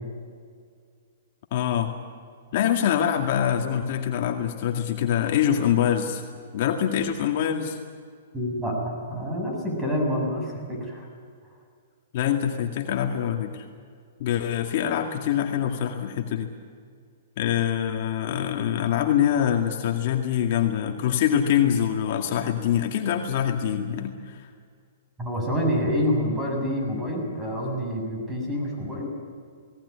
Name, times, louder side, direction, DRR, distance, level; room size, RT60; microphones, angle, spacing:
voice 1, 1.5-1.9 2.5-6.2 6.5-7.8 12.1-13.6 14.2-16.5 17.4-24.5, left 9 dB, 50° left, 3 dB, 2.2 m, -24 dB
voice 2, 8.3-11.1 25.2-29.1, equal, 10° right, 0 dB, 7.8 m, -27 dB
19.5 x 18.5 x 9.9 m, 2.1 s
hypercardioid pair, 145°, 0 cm